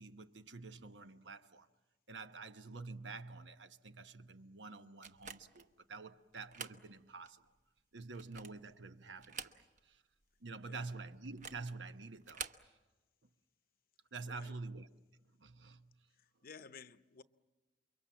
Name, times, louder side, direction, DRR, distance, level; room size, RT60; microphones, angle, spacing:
voice 1, 0.0-1.7 2.1-7.5 7.9-10.0 10.4-12.7 14.1-14.9 15.4-15.9, right 3 dB, 85° right, 1.0 m, -48 dB
sound 1, 5.0-5.7 6.3-6.8 7.3-7.4 8.0-8.7 9.2-9.9 10.2-10.3 11.2-11.7 12.2-12.7, right 6 dB, 45° right, 1.0 m, -48 dB
voice 2, 14.2-14.5 16.2-17.2, left 5 dB, 55° left, 0.8 m, -55 dB
28.5 x 23.5 x 7.3 m
head